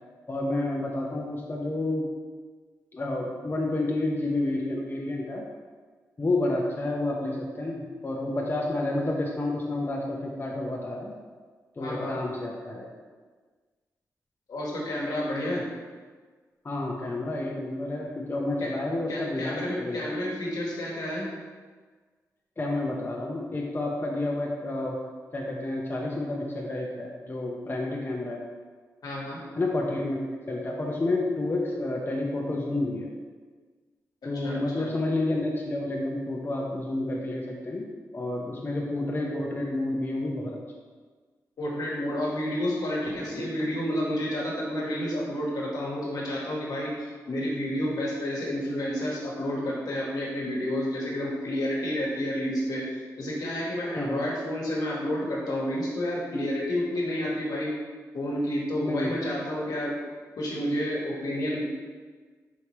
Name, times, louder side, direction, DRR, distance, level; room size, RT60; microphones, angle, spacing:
voice 1, 0.3-2.1 2.9-5.4 6.2-11.1 11.8-12.9 16.6-20.0 22.6-25.0 25.3-28.4 29.6-33.1 34.2-37.9 38.1-40.6 54.0-54.2 58.8-59.1, left 2 dB, 30° left, -2 dB, 0.6 m, -30 dB
voice 2, 11.8-12.2 14.5-15.7 18.6-18.7 19.1-21.3 29.0-29.4 34.3-34.9 41.6-52.9 53.2-57.7 58.1-60.0 60.4-61.6, left 1 dB, 75° left, -4 dB, 1.1 m, -30 dB
4.6 x 2.7 x 3.1 m, 1.5 s
cardioid pair, 50°, 7 cm